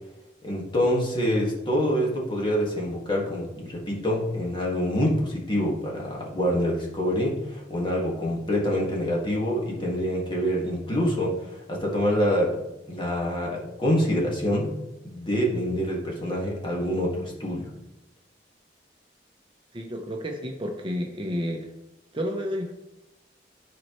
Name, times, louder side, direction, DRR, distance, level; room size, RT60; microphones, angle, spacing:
voice 1, 0.4-14.7 15.0-17.7, equal, 25° left, -2 dB, 1.7 m, -26 dB
voice 2, 19.7-21.7 22.1-22.7, equal, 30° right, 2 dB, 0.7 m, -31 dB
12.0 x 4.4 x 3.0 m, 0.94 s
head